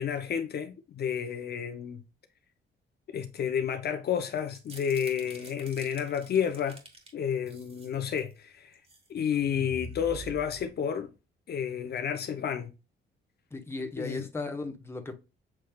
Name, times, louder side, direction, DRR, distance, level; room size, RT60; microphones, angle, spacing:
voice 1, 0.0-2.0 3.1-6.8 7.1-8.8 9.1-11.1 11.5-12.7 14.0-14.2, left 8 dB, 55° left, 0.7 m, -31 dB
Candy Bar Crunch, 4.4-7.1 7.5-8.3 8.7-9.1 9.4-11.0, right 1 dB, 30° right, 1.7 m, -46 dB
voice 2, 13.5-15.1, left 3 dB, 10° left, 1.1 m, -36 dB
7.3 x 3.2 x 2.3 m
cardioid pair, 90°, 20 cm